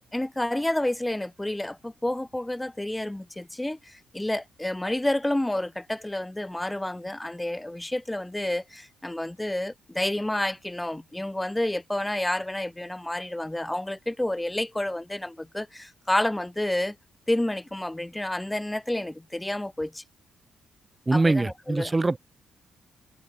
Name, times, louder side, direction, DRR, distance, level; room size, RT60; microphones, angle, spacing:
voice 1, 0.1-16.9 17.3-20.0 21.1-21.9, left 1 dB, 10° left, 1.2 m, -29 dB
voice 2, 21.1-22.2, right 2 dB, 25° right, 0.8 m, -23 dB
supercardioid pair, 65°, 0 cm